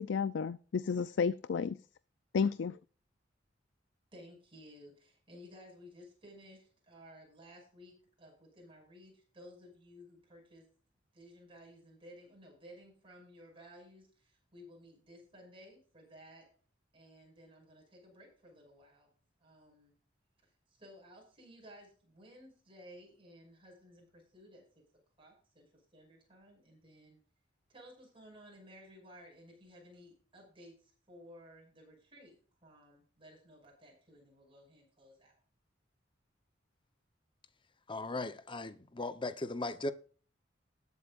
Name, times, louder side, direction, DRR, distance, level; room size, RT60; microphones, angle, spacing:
voice 1, 0.0-1.8 2.3-2.8, left 6 dB, 70° left, 0.4 m, -32 dB
voice 2, 4.1-10.7 11.1-16.5 16.9-19.1 19.4-19.9 20.4-24.6 25.2-27.2 27.7-32.4 32.6-35.4, equal, 30° right, 6.0 m, -56 dB
voice 3, 37.9-39.9, left 2 dB, 25° left, 0.8 m, -37 dB
19.5 x 8.1 x 2.5 m
head